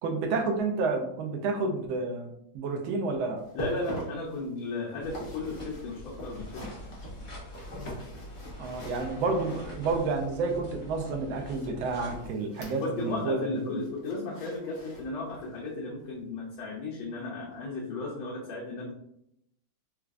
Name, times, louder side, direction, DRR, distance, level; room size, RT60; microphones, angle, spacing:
voice 1, 0.0-3.4 8.6-13.8, right 3 dB, 85° right, 3 dB, 1.5 m, -30 dB
sound 1, 3.4-10.1 11.5-13.3 13.6-15.6 16.0-16.2 16.7-16.8, equal, 60° left, 0.5 m, -43 dB
voice 2, 3.5-6.6 12.8-18.9, left 2 dB, 80° left, -3 dB, 1.5 m, -35 dB
sound 2, 5.0-12.3, left 1 dB, 30° left, 1.0 m, -44 dB
4.4 x 2.3 x 2.5 m, 0.76 s
omnidirectional pair, 2.2 m